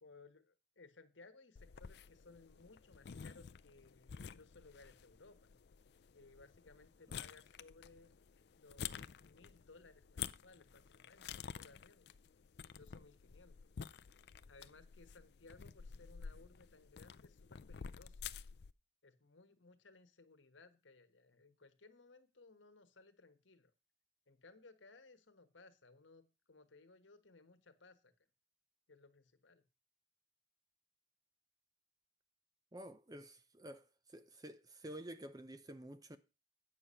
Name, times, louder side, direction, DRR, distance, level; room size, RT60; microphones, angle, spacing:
voice 1, 0.0-5.5 6.1-8.1 8.6-12.1 12.7-13.6 14.5-18.2 19.0-23.7 24.3-28.1 28.9-29.6, left 3 dB, 80° left, 1.3 m, -62 dB
sound 1, 1.6-18.7, left 7 dB, 60° left, 0.4 m, -51 dB
voice 2, 32.7-33.8 34.1-36.2, right 1 dB, 20° right, 0.6 m, -50 dB
9.2 x 6.8 x 5.6 m
head